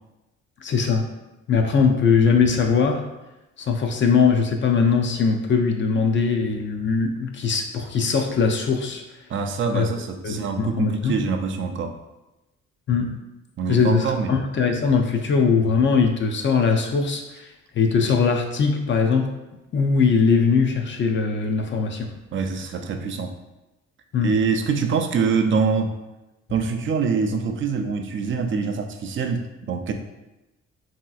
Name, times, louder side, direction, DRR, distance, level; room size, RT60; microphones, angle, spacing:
voice 1, 0.6-1.1 1.5-3.0 3.6-9.0 9.7-9.9 10.2-11.2 12.9-13.1 13.7-19.3 19.7-22.1 24.1-24.3, left 5 dB, 40° left, 3 dB, 0.4 m, -21 dB
voice 2, 9.3-11.9 13.6-14.4 22.3-23.3 24.2-25.9 26.5-29.9, right 5 dB, 45° right, 6 dB, 0.4 m, -24 dB
3.1 x 2.8 x 2.3 m, 0.99 s
cardioid pair, 90°, 30 cm